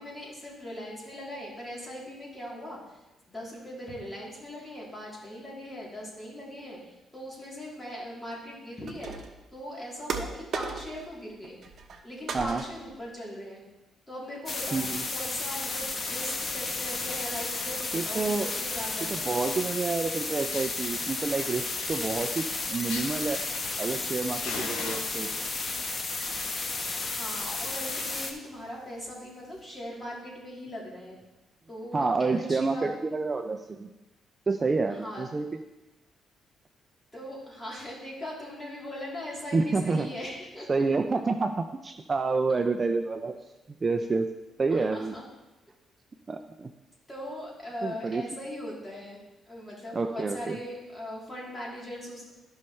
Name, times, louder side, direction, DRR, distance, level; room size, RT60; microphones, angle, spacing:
voice 1, 0.0-9.1 9.5-11.6 12.0-13.6 14.1-19.3 27.0-31.2 31.7-32.9 34.9-35.2 37.1-40.8 44.7-45.2 47.1-52.4, equal, 20° left, -5 dB, 3.3 m, -40 dB
sound 1, 8.9-9.4 10.1-11.1 11.4-12.0 12.3-12.9, right 5 dB, 55° right, 0.9 m, -36 dB
sound 2, 14.5-28.3, left 3 dB, 35° left, 1.1 m, -33 dB
voice 2, 14.7-15.0 17.9-18.5 19.1-23.4 23.8-25.3 31.9-33.9 34.5-35.5 39.5-40.1 40.7-43.4 43.8-44.3 44.6-45.1 46.3-46.7 47.8-48.2 49.9-50.6, right 4 dB, 30° right, 7 dB, 0.4 m, -28 dB
Fire, 20.0-20.1 20.5-20.9 21.5-24.1 24.4-25.6 26.4-26.7 27.0-27.1 27.5-27.6 27.8-28.1 28.6-28.7 29.6-29.7, left 4 dB, 85° left, 1.2 m, -41 dB
13.0 x 5.5 x 3.2 m, 1.0 s
cardioid pair, 90°, 0 cm